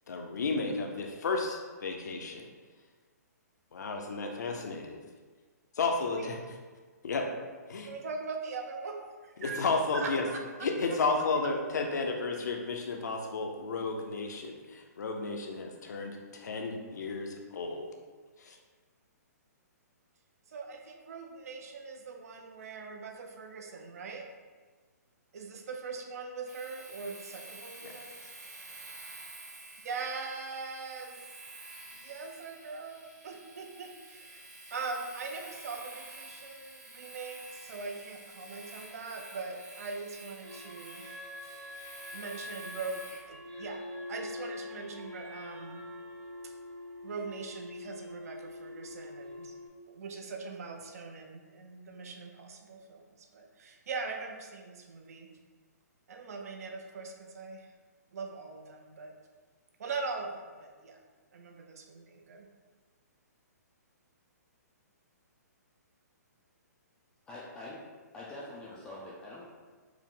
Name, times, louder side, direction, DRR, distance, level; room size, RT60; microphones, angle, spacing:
voice 1, 0.1-2.5 3.7-5.0 5.7-6.6 7.0-7.3 7.7-7.9 9.4-10.3 10.6-17.9 18.4-18.6, left 3 dB, 75° left, 2 dB, 0.6 m, -33 dB
voice 2, 7.9-9.6 9.9-10.4 20.5-24.3 25.3-28.1 29.8-31.2 31.9-34.5 34.7-41.0 42.1-43.0 43.3-43.8 44.1-45.9 47.0-49.5 49.9-55.3 56.1-57.7 58.1-59.1 59.8-61.0 61.3-62.5, right 4 dB, 60° right, 3 dB, 0.6 m, -41 dB
Domestic sounds home sounds, 26.5-43.3, right 2 dB, 75° right, 1.1 m, -49 dB
sound 1, 40.4-49.7, left 2 dB, 30° right, 0.9 m, -44 dB
voice 3, 67.2-67.8 68.1-69.4, left 1 dB, 10° left, -7 dB, 0.3 m, -44 dB
4.7 x 2.1 x 3.7 m, 1.4 s
hypercardioid pair, 160°, 9 cm